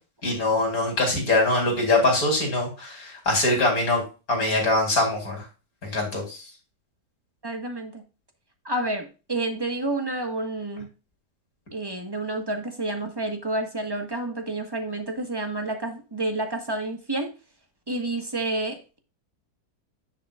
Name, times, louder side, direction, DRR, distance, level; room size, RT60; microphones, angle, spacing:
voice 1, 0.2-4.0 4.3-5.4 5.8-6.4, left 2 dB, 55° left, 1 dB, 3.9 m, -23 dB
voice 2, 7.4-8.0 8.6-10.9 11.7-17.3 17.9-19.0, right 2 dB, 15° right, 5 dB, 1.3 m, -29 dB
10.5 x 6.7 x 2.4 m, 0.31 s
omnidirectional pair, 1.8 m